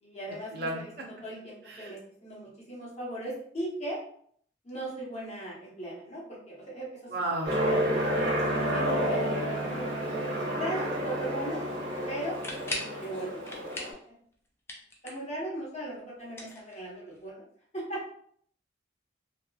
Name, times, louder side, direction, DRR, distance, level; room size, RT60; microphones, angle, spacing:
voice 1, 0.0-4.0 4.6-7.1 8.1-9.9 10.5-11.6 12.1-12.4 12.7-13.6 13.9-14.1 15.0-17.4 17.7-18.0, right 1 dB, 35° left, -5 dB, 0.9 m, -38 dB
voice 2, 7.1-7.6, right 2 dB, 55° right, 0 dB, 0.5 m, -32 dB
Aircraft, 7.4-13.9, equal, 75° right, 1.0 m, -30 dB
sound 1, 12.2-13.0 13.4-14.0 14.3-15.4 16.2-17.2, left 2 dB, 15° left, 0.3 m, -39 dB
2.8 x 2.4 x 2.2 m, 0.63 s
head